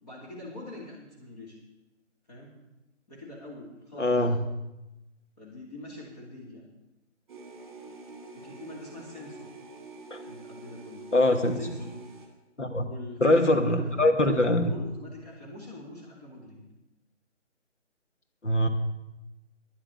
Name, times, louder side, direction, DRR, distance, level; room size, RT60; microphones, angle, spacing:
voice 1, 0.0-1.6 2.3-2.6 3.1-4.1 5.4-6.6 8.3-9.5 10.2-11.0 11.5-11.9 12.7-16.6, left 2 dB, 35° left, -5 dB, 2.6 m, -44 dB
voice 2, 4.0-4.4 10.1-10.2 11.1-11.6 12.6-12.9 13.2-14.7 18.4-18.7, left 1 dB, 75° left, 6 dB, 1.5 m, -23 dB
sound 1, 7.3-12.3, right 3 dB, 20° right, 2.0 m, -46 dB
10.5 x 8.4 x 8.2 m, 0.95 s
figure-of-eight pair, 155°, 37 cm